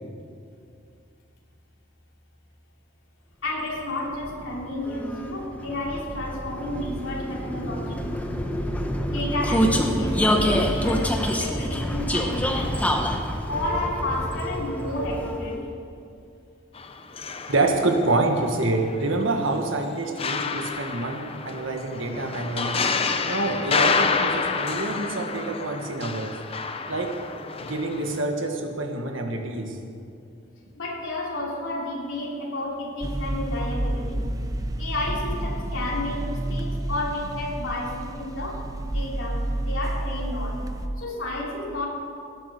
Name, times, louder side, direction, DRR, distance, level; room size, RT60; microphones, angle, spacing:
voice 1, 3.4-8.3 9.1-13.0 13.5-15.7 30.8-34.4 34.8-40.7 41.0-41.9, left 1 dB, 80° left, -3 dB, 3.2 m, -31 dB
Vehicle, 3.8-15.7, equal, 10° left, 1.0 m, -27 dB
sound 1, 16.8-18.4 18.8-28.2, left 4 dB, 30° left, 0.7 m, -29 dB
voice 2, 17.5-22.8 23.2-26.4 26.9-27.2 27.6-29.8, right 2 dB, 80° right, 3 dB, 1.6 m, -26 dB
sound 2, 33.0-40.9, right 1 dB, 20° right, 0.7 m, -30 dB
18.0 x 8.7 x 6.7 m, 2.5 s
head